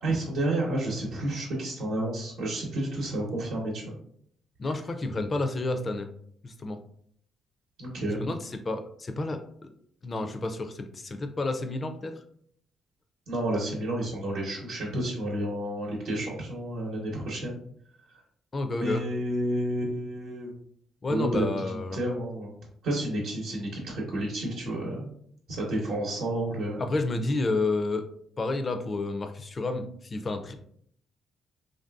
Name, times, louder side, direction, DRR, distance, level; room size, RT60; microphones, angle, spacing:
voice 1, 0.0-4.0 7.8-8.2 13.3-17.6 18.7-20.5 21.1-22.5 22.8-25.1 25.5-26.8, right 1 dB, 85° right, -4 dB, 0.8 m, -30 dB
voice 2, 4.6-6.1 6.4-6.8 8.1-9.7 10.0-12.1 18.5-19.0 21.0-22.0 26.8-28.0 28.4-30.5, left 2 dB, 35° left, 7 dB, 0.4 m, -30 dB
3.1 x 2.6 x 2.3 m, 0.64 s
cardioid pair, 90°, 0 cm